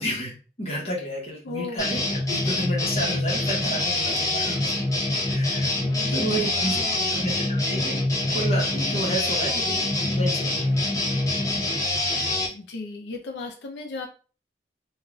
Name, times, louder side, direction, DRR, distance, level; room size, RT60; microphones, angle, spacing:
voice 1, 0.0-2.0 2.3-4.7 5.3-5.7 6.1-6.8 7.1-8.0 8.3-9.8 10.1-10.7 11.6-11.8, right 1 dB, 35° left, -2 dB, 1.0 m, -31 dB
voice 2, 1.4-1.9 5.8-7.2 12.5-14.1, left 3 dB, 75° left, 2 dB, 0.6 m, -36 dB
sound 1, 1.8-12.5, left 2 dB, 20° left, 0.6 m, -25 dB
2.4 x 2.4 x 3.1 m, 0.38 s
head